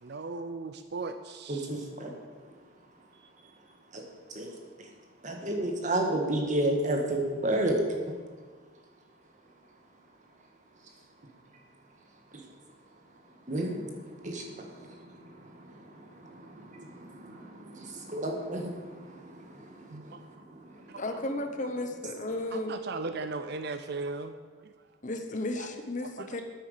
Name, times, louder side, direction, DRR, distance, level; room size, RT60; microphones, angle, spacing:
voice 1, 0.0-1.7 19.9-20.2 20.9-21.2 22.5-24.3 25.6-25.7 26.0-26.3, right 3 dB, 55° right, 9 dB, 0.5 m, -37 dB
voice 2, 1.5-2.1 3.9-4.0 4.3-4.5 5.2-7.8 13.5-13.7 14.2-14.7 16.7-17.5 17.8-18.8, right 1 dB, 35° right, 2 dB, 1.7 m, -30 dB
voice 3, 21.0-22.8 25.0-26.4, left 2 dB, 35° left, 6 dB, 0.9 m, -34 dB
9.2 x 9.2 x 6.7 m, 1.5 s
head